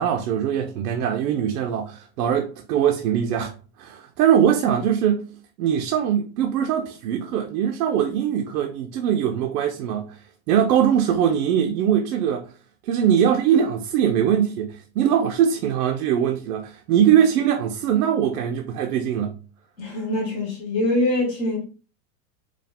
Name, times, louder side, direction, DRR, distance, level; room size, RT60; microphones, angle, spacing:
voice 1, 0.0-3.5 3.8-5.3 5.6-10.2 10.5-12.5 12.8-19.4, right 9 dB, 75° right, 0.7 m, -21 dB
voice 2, 19.8-21.6, left 1 dB, 15° left, 0.4 m, -24 dB
4.9 x 2.3 x 3.5 m
supercardioid pair, 175°, 46 cm